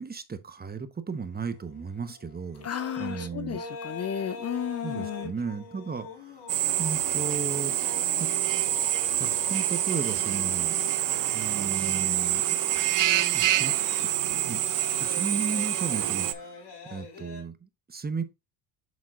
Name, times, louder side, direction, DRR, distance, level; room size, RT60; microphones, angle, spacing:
voice 1, 0.0-2.7 3.0-3.6 4.8-6.4 6.8-7.7 8.2-8.3 9.1-10.8 11.3-12.6 13.3-13.7 14.0-14.2 14.5-14.6 15.0-18.2, right 5 dB, 20° right, 0.9 m, -35 dB
sound 1, 1.1-17.4, left 3 dB, 70° left, 4.1 m, -45 dB
voice 2, 2.6-5.3, left 9 dB, 35° left, 0.5 m, -33 dB
Drill, 6.5-16.3, right 12 dB, 45° right, 0.7 m, -26 dB
7.2 x 6.1 x 2.4 m
cardioid pair, 100°, 44 cm